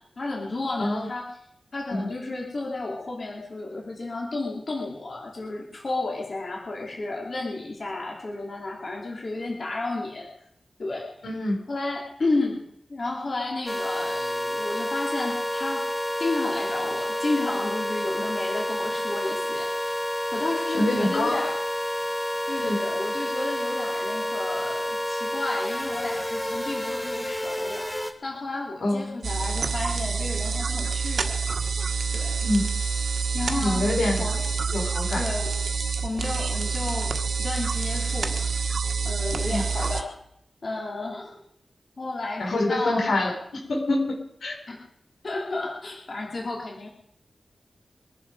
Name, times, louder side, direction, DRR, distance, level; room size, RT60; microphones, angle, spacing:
voice 1, 0.2-1.3 1.7-10.3 10.8-11.2 11.7-12.6 12.9-15.9 16.2-19.9 20.3-21.6 22.5-31.4 32.1-32.4 33.3-34.4 35.1-38.7 39.0-40.1 40.6-41.4 42.0-43.1 44.7-44.8 45.2-46.9, left 2 dB, 50° left, -1 dB, 3.4 m, -32 dB
voice 2, 11.2-11.6 20.7-21.3 22.6-22.8 28.8-29.2 32.4-32.6 33.6-34.2 34.7-35.2 39.5-39.6 42.4-43.3 43.7-44.1 44.4-44.6, left 1 dB, 90° left, 0 dB, 5.4 m, -25 dB
sound 1, 13.7-28.1, left 1 dB, 15° left, 2.3 m, -29 dB
sound 2, 29.2-40.0, right 5 dB, 75° right, 1.5 m, -27 dB
23.5 x 11.0 x 5.0 m, 0.75 s
wide cardioid pair, 110°, 0 cm